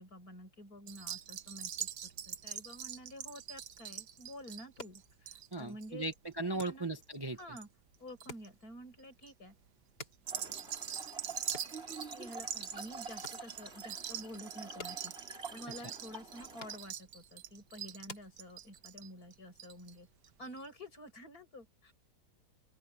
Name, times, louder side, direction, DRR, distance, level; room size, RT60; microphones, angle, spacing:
voice 1, 0.0-6.0 6.5-6.9 7.4-7.7 8.0-9.5 11.9-15.1 15.5-20.1 20.4-21.9, equal, 60° left, 8.4 m, -50 dB
sound 1, 0.9-7.6 7.9-8.5 9.0-9.3 10.1-19.9 20.2-20.3 20.6-20.7, right 9 dB, 80° right, 1.6 m, -43 dB
sound 2, 4.5-19.0, left 2 dB, 80° left, 4.8 m, -56 dB
voice 2, 5.5-7.4, right 2 dB, 15° right, 1.3 m, -37 dB
Trickle dribble / Fill (with liquid), 10.2-16.9, right 4 dB, 40° right, 4.2 m, -48 dB
open air
omnidirectional pair, 1.8 m